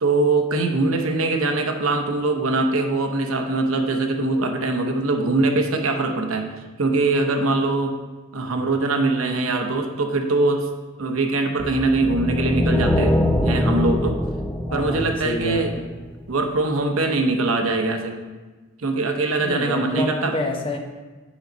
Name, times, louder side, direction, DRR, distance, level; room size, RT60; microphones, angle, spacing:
voice 1, 0.0-6.5 6.8-7.9 8.3-10.7 11.0-14.2 14.7-15.7 16.3-18.2 18.8-20.3, right 3 dB, 85° right, 4 dB, 0.8 m, -22 dB
sound 1, 11.6-16.0, left 1 dB, 5° left, 0.3 m, -23 dB
voice 2, 14.7-15.9 19.4-20.8, left 1 dB, 25° left, 2 dB, 0.8 m, -28 dB
7.1 x 5.3 x 4.0 m, 1.3 s
head